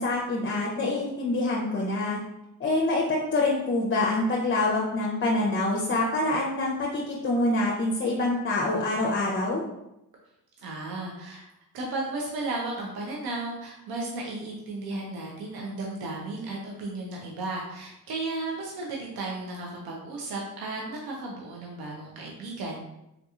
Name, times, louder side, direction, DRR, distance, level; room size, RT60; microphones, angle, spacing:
voice 1, 0.0-2.2 2.6-9.6, left 2 dB, 30° left, -3 dB, 0.6 m, -26 dB
voice 2, 10.6-11.4 11.7-22.8, right 2 dB, 75° right, -2 dB, 0.7 m, -34 dB
3.6 x 2.8 x 2.4 m, 0.88 s
cardioid pair, 85°, 37 cm